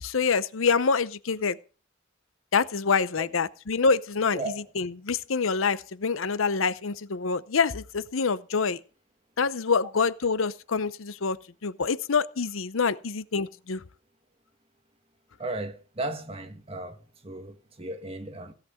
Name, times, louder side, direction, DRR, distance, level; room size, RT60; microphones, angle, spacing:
voice 1, 0.0-1.6 2.5-8.8 9.4-13.8, left 5 dB, 85° left, 0.7 m, -26 dB
voice 2, 15.4-18.5, right 2 dB, 30° right, 1.6 m, -35 dB
16.5 x 6.0 x 7.7 m
head